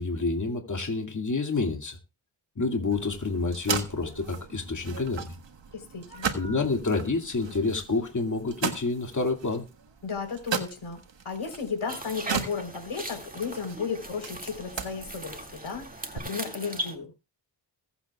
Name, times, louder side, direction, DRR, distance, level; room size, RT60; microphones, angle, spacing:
voice 1, 0.0-2.0 2.6-5.3 6.3-9.7, left 3 dB, 40° left, 2.4 m, -28 dB
sound 1, 2.9-16.2, right 6 dB, 65° right, 1.6 m, -37 dB
voice 2, 5.7-6.3 10.0-17.1, left 5 dB, 80° left, 4.0 m, -34 dB
sound 2, 11.9-17.0, right 1 dB, 20° right, 2.2 m, -39 dB
21.5 x 8.0 x 2.4 m
cardioid pair, 60°, 47 cm